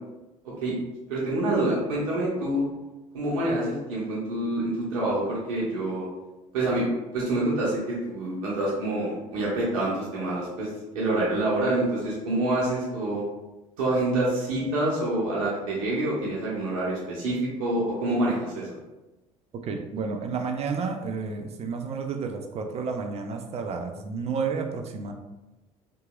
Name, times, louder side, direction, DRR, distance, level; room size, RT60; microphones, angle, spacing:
voice 1, 0.4-0.8 1.1-2.6 3.1-6.1 6.5-10.7 10.9-13.2 13.8-18.7, right 1 dB, 70° right, -6 dB, 0.8 m, -27 dB
voice 2, 19.6-25.1, right 5 dB, 35° right, 4 dB, 0.5 m, -31 dB
2.8 x 2.7 x 2.3 m, 1.1 s
hypercardioid pair, 65°, 17 cm